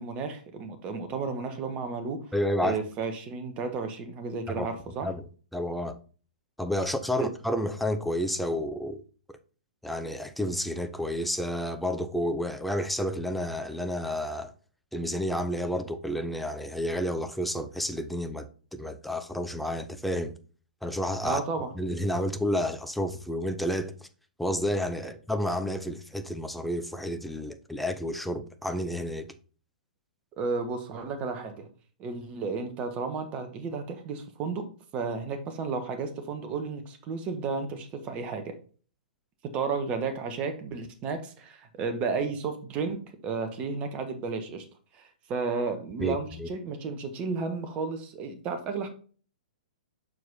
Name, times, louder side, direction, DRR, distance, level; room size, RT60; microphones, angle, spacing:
voice 1, 0.0-2.3 2.6-5.1 7.1-7.3 21.2-21.7 25.0-25.1 30.4-31.7 32.0-34.7 34.9-38.5 39.4-44.6 44.9-48.9, right 4 dB, 30° right, 1.3 m, -33 dB
voice 2, 2.3-2.8 4.5-4.7 5.0-5.3 5.5-6.0 6.6-9.0 9.8-14.5 14.9-20.3 20.8-21.4 21.8-23.9 24.4-29.3 46.0-46.5, equal, ahead, 0.6 m, -30 dB
6.5 x 4.6 x 4.1 m
figure-of-eight pair, 115°, 5 cm